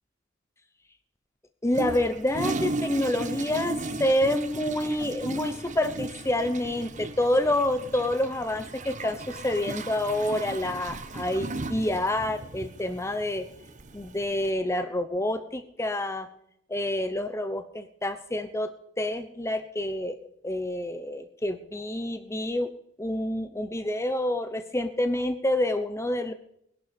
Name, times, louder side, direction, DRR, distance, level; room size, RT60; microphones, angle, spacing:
voice 1, 1.6-13.4 13.9-16.3 16.7-18.7 19.0-20.2 20.4-22.7 23.0-26.3, left 1 dB, 15° left, 9 dB, 0.8 m, -28 dB
Toilet flush, 1.7-14.5, right 2 dB, 40° right, 1.1 m, -36 dB
20.5 x 11.5 x 5.3 m, 0.75 s
head